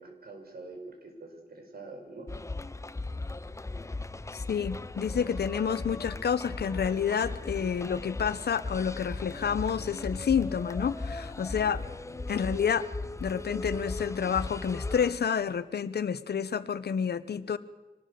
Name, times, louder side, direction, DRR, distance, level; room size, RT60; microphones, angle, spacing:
voice 1, 0.0-2.3, right 3 dB, 65° right, 3 dB, 5.9 m, -45 dB
sound 1, 2.3-15.1, left 2 dB, 15° left, 0.7 m, -37 dB
voice 2, 4.3-11.8 12.3-12.9 13.2-17.6, left 7 dB, 75° left, 14 dB, 1.1 m, -29 dB
25.0 x 20.0 x 6.8 m, 1.1 s
wide cardioid pair, 115°, 17 cm